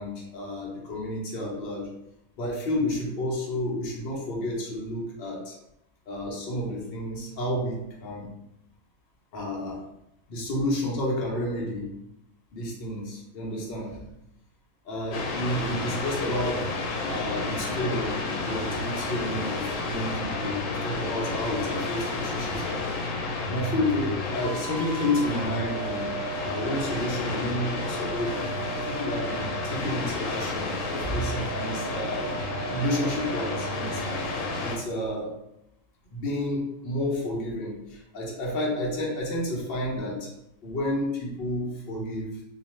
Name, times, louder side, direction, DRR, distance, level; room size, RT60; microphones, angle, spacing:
voice 1, 0.0-2.0 2.4-5.6 6.1-8.3 9.3-9.9 10.3-12.0 12.5-14.1 14.8-23.0 23.5-26.1 26.4-32.4 32.7-35.4 36.1-40.4 40.6-42.4, left 1 dB, 50° left, -3 dB, 0.8 m, -31 dB
sound 1, 15.1-34.8, left 2 dB, 85° left, 1.1 m, -31 dB
2.4 x 2.3 x 3.1 m, 0.80 s
omnidirectional pair, 1.5 m